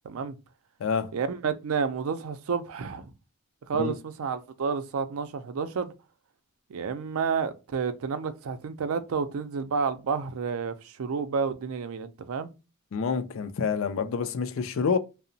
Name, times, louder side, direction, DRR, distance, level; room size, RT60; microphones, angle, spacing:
voice 1, 0.0-0.4 1.1-3.1 3.7-5.9 6.7-12.5, right 5 dB, 85° right, 0.4 m, -30 dB
voice 2, 12.9-15.0, left 5 dB, 65° left, 0.4 m, -27 dB
2.8 x 2.0 x 2.6 m
head